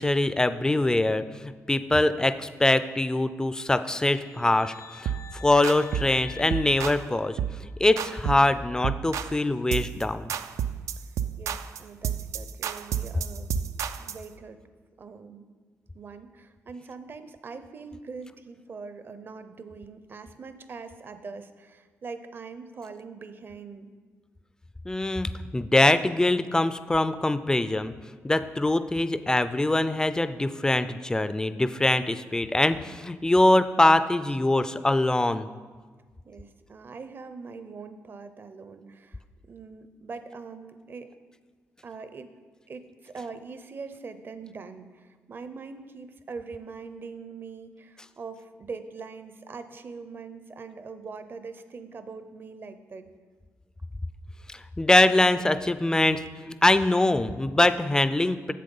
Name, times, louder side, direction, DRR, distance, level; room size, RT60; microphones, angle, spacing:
voice 1, 0.0-5.2 5.4-7.4 7.8-10.3 24.9-27.9 28.2-35.5 54.5-58.5, left 2 dB, 15° left, 12 dB, 0.4 m, -23 dB
sound 1, 3.9-7.9, left 6 dB, 90° left, 0.8 m, -46 dB
sound 2, 5.1-5.3 5.6-6.2 6.5-7.0 7.4-7.6 8.0-8.5 8.8-9.4 9.7-10.0 10.3-14.2, right 9 dB, 80° right, 0.3 m, -31 dB
voice 2, 11.4-14.6 15.0-15.5 15.9-23.9 36.2-39.2 39.5-41.1 41.8-42.3 42.7-53.1, right 4 dB, 45° right, 10 dB, 0.6 m, -42 dB
7.6 x 7.4 x 5.3 m, 1.5 s
cardioid pair, 95°, 5 cm